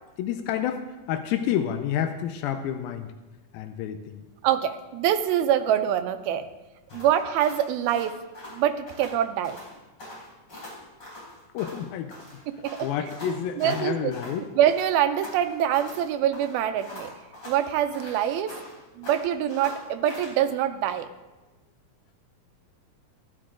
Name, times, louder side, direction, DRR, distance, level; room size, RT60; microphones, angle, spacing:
voice 1, 0.2-3.1 3.5-4.2 6.9-7.0 11.5-12.2 12.8-14.5, left 10 dB, 85° left, 8 dB, 2.4 m, -29 dB
voice 2, 4.4-6.4 6.9-8.2 8.5-9.6 12.5-12.9 13.3-14.1 14.6-17.1 17.5-18.6 19.0-21.1, right 10 dB, 90° right, 9 dB, 2.6 m, -25 dB
sound 1, 6.9-9.2 9.4-9.7 10.0-11.9 12.1-14.4 14.7-16.0 16.3-18.8 19.0-20.4, left 1 dB, 30° left, 5.4 m, -42 dB
14.5 x 13.5 x 3.7 m, 1.2 s
omnidirectional pair, 4.2 m